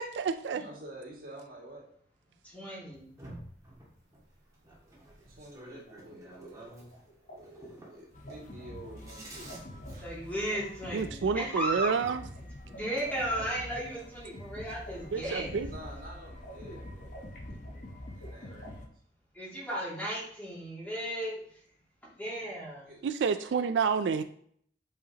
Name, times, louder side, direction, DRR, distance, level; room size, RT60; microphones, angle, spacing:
voice 1, 0.0-0.6 10.9-12.2 15.1-15.7 23.0-24.2, right 5 dB, 90° right, 11 dB, 0.4 m, -29 dB
voice 2, 0.6-1.9 2.7-2.9 5.3-6.7 7.1-9.4 9.9-10.1 12.6-12.8 15.6-17.1 18.1-18.9 22.8-23.5, right 1 dB, 55° right, -2 dB, 2.0 m, -49 dB
voice 3, 2.4-3.1 10.0-11.9 12.7-15.6 19.3-21.6 22.2-22.9, right 1 dB, 10° left, -6 dB, 2.4 m, -35 dB
sound 1, 2.9-11.1 12.9-13.0 13.3-14.1 14.5-15.2, right 1 dB, 20° right, 1.7 m, -52 dB
sound 2, 5.9-18.7, right 1 dB, 70° left, 2.4 m, -52 dB
sound 3, 8.1-18.9, left 1 dB, 45° left, 0.8 m, -46 dB
8.3 x 5.0 x 2.9 m, 0.62 s
head